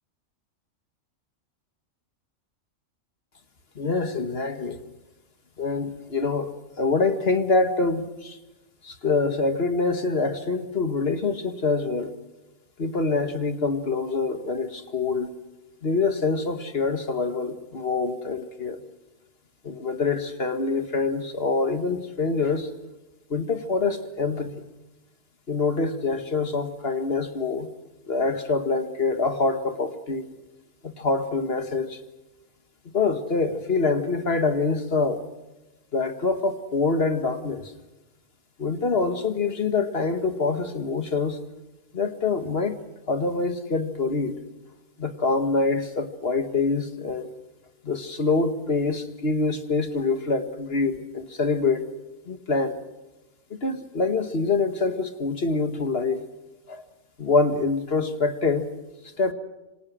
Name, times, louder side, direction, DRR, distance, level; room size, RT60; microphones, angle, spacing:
voice 1, 3.8-4.8 5.6-8.4 8.8-12.1 12.8-15.3 15.8-18.8 19.6-22.7 23.3-24.5 25.5-27.7 28.1-30.3 30.8-32.0 32.9-35.2 35.9-37.6 38.6-41.4 41.9-42.8 43.1-44.3 45.0-47.3 47.8-51.8 52.3-52.8 53.5-56.2 56.7-56.8 57.2-58.7 59.2-59.3, left 3 dB, 45° left, 8 dB, 2.0 m, -25 dB
27.0 x 25.5 x 6.3 m, 1.0 s
omnidirectional pair, 1.4 m